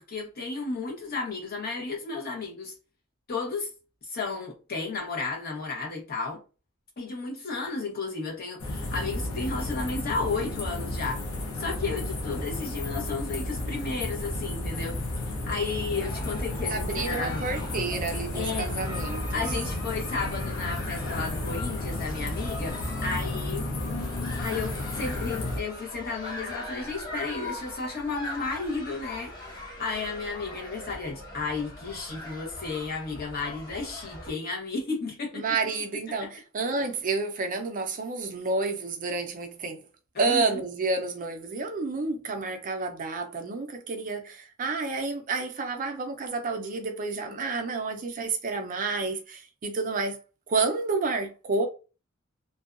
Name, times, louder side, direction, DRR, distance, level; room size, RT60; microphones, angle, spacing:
voice 1, 0.0-2.7 3.3-3.7 4.0-6.4 7.0-11.2 11.6-15.0 15.5-17.5 18.3-18.7 19.3-23.7 24.4-35.4 36.2-36.3 40.1-40.5, left 4 dB, 45° left, 1.0 m, -33 dB
sound 1, 8.6-25.6, left 1 dB, 80° left, 0.7 m, -32 dB
sound 2, 16.0-34.3, left 1 dB, 20° left, 1.3 m, -41 dB
voice 2, 16.7-19.4 35.3-39.8 40.2-50.2 50.5-51.7, right 3 dB, 40° right, 0.5 m, -30 dB
2.6 x 2.2 x 2.5 m
head